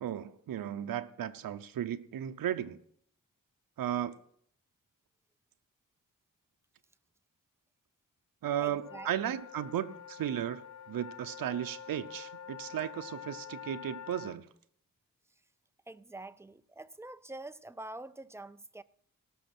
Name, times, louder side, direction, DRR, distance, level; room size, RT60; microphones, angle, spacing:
voice 1, 0.0-2.8 3.8-4.2 8.4-10.6 10.9-14.4, right 10 dB, 80° right, 0.7 m, -35 dB
voice 2, 8.6-9.4 15.9-18.8, right 2 dB, 10° right, 0.4 m, -46 dB
sound 1, 8.7-14.4, left 8 dB, 55° left, 0.6 m, -47 dB
17.5 x 6.4 x 6.0 m
wide cardioid pair, 105°, 34 cm